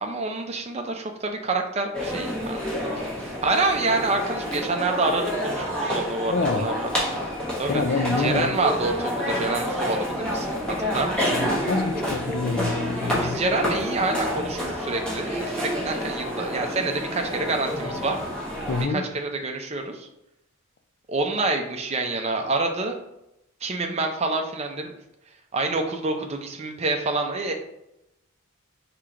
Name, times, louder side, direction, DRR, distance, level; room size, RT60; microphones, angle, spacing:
voice 1, 0.0-2.9 3.2-6.9 7.6-7.8 8.2-10.5 10.8-11.3 13.2-18.2 18.8-20.1 21.1-23.0 23.6-24.9 25.5-27.5, right 3 dB, 30° right, 4 dB, 0.5 m, -27 dB
sound 1, 1.9-18.8, equal, 5° left, 1.0 m, -28 dB
voice 2, 6.3-6.7 7.7-8.6 10.9-13.4 18.7-19.0, left 4 dB, 45° left, 7 dB, 0.4 m, -27 dB
4.8 x 2.9 x 3.7 m, 0.85 s
head